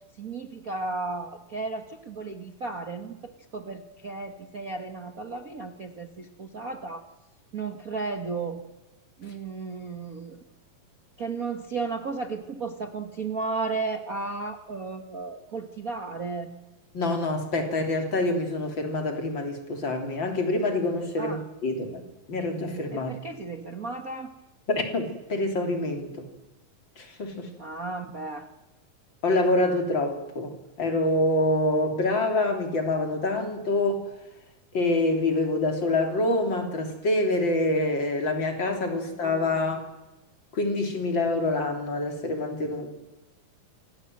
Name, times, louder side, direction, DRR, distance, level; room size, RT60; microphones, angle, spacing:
voice 1, 0.2-7.0 7.5-8.6 9.2-10.4 11.2-16.5 21.2-21.5 22.9-24.3 27.6-28.5 39.1-39.3, right 3 dB, 60° right, 0.9 m, -34 dB
voice 2, 16.9-22.0 22.3-23.1 24.7-26.3 27.0-27.5 29.2-34.0 34.7-39.8 40.5-42.9, left 2 dB, 35° left, 3.7 m, -26 dB
27.5 x 22.0 x 7.8 m
omnidirectional pair, 3.9 m